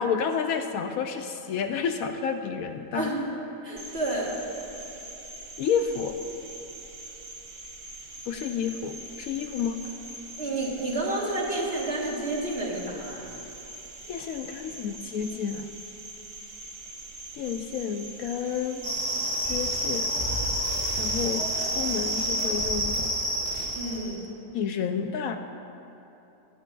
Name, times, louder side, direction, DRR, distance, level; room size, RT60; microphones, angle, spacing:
voice 1, 0.0-3.1 5.6-6.2 8.3-9.8 14.1-15.7 17.3-18.8 19.4-20.1 21.0-23.1 24.5-25.4, left 7 dB, 75° left, 6 dB, 1.0 m, -30 dB
voice 2, 2.9-3.3 3.6-4.3 10.4-13.3 23.7-24.2, right 2 dB, 45° right, -4 dB, 1.7 m, -30 dB
Cricket, 3.8-22.5, right 2 dB, 70° right, 1.6 m, -43 dB
sound 1, 18.8-24.2, right 1 dB, 90° right, 2.3 m, -29 dB
sound 2, 19.4-19.9 20.1-23.1 23.4-23.7, right 1 dB, 15° left, 2.0 m, -38 dB
18.5 x 10.0 x 2.4 m, 2.9 s
omnidirectional pair, 1.6 m